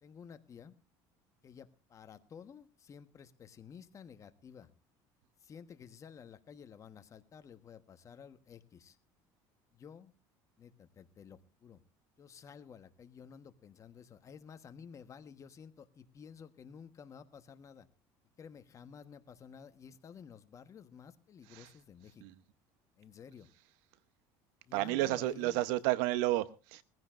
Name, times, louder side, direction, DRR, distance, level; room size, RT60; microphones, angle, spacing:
voice 1, 0.0-0.7 1.4-4.7 5.4-9.0 9.7-10.1 10.6-11.8 12.2-17.9 18.4-22.2 23.0-23.5 24.7-25.6, left 7 dB, 35° left, 1.2 m, -53 dB
voice 2, 24.7-26.8, right 16 dB, 80° right, 0.9 m, -31 dB
22.0 x 15.0 x 2.5 m
supercardioid pair, 115°, 10 cm